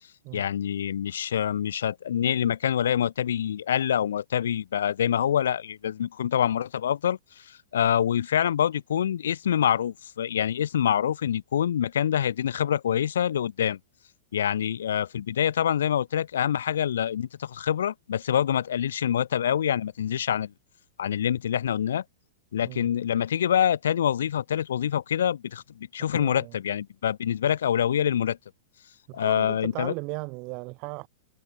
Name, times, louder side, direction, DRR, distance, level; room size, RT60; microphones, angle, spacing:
voice 1, 0.3-13.8 14.3-20.5 21.0-22.0 22.5-28.4 29.1-29.9, left 9 dB, 80° left, 0.7 m, -26 dB
voice 2, 26.1-26.5 29.1-31.1, right 28 dB, 45° right, 4.3 m, -37 dB
hypercardioid pair, 120°, 0 cm